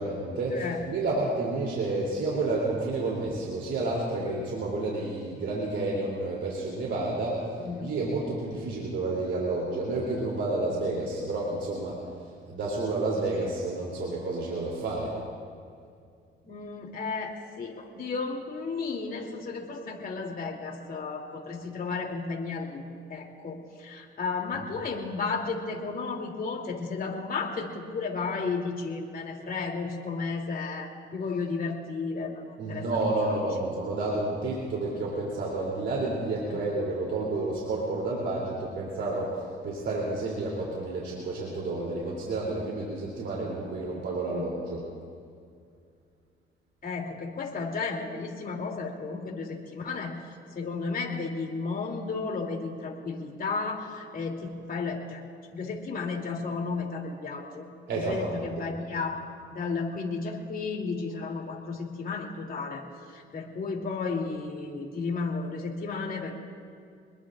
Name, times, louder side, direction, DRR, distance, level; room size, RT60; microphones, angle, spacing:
voice 1, 0.0-7.4 7.8-12.0 12.5-15.1 24.5-24.9 32.6-39.3 39.6-44.8 57.9-58.7, right 2 dB, 65° right, -4 dB, 3.1 m, -30 dB
voice 2, 16.4-22.8 23.1-32.4 32.7-32.9 33.3-33.4 36.5-36.6 44.3-44.4 46.8-50.1 50.5-55.2 55.5-57.6 57.9-59.2 59.5-62.8 63.1-66.4, left 4 dB, 45° left, 0 dB, 3.0 m, -33 dB
26.5 x 21.0 x 2.5 m, 2.3 s
cardioid pair, 90°, 20 cm